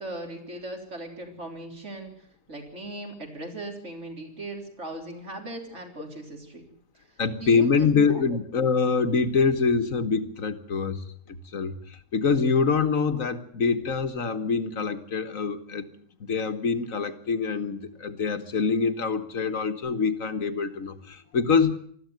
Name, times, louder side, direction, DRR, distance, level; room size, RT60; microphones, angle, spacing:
voice 1, 0.0-6.7 7.4-8.2, right 1 dB, 45° right, 3 dB, 4.1 m, -39 dB
voice 2, 7.2-11.0 11.5-15.9 16.3-21.7, left 5 dB, 55° left, 9 dB, 1.8 m, -25 dB
20.5 x 14.5 x 9.2 m, 0.63 s
omnidirectional pair, 1.7 m